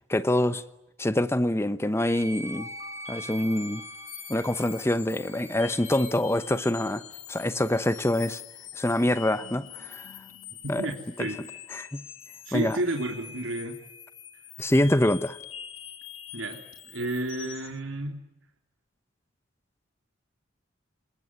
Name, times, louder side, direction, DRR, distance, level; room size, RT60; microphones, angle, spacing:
voice 1, 0.1-0.6 1.0-2.7 3.1-3.8 4.3-7.0 7.3-8.4 8.7-10.1 10.7-10.9 11.2-11.3 11.7-12.0 12.5-12.8 14.6-15.4, left 1 dB, 15° left, 0.9 m, -25 dB
Wind instrument woodwind instrument, 2.0-6.1, right 2 dB, 15° right, 1.6 m, -43 dB
sound 1, 2.3-17.8, left 10 dB, 85° left, 2.4 m, -45 dB
voice 2, 10.6-11.4 12.5-13.8 16.3-18.2, right 1 dB, 85° right, 3.4 m, -31 dB
27.5 x 22.0 x 9.7 m
head